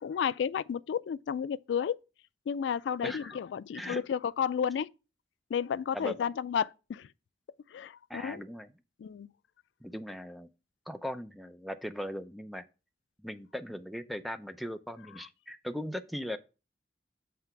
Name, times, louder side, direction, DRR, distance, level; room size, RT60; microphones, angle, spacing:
voice 1, 0.0-2.0 2.5-4.9 5.5-7.1 7.7-8.4 9.0-9.3, left 7 dB, 90° left, 0.3 m, -32 dB
voice 2, 3.0-3.4 3.7-4.0 5.9-6.2 8.1-8.7 9.8-10.5 10.9-12.6 13.2-16.4, equal, ahead, 0.4 m, -39 dB
7.7 x 3.3 x 5.8 m
head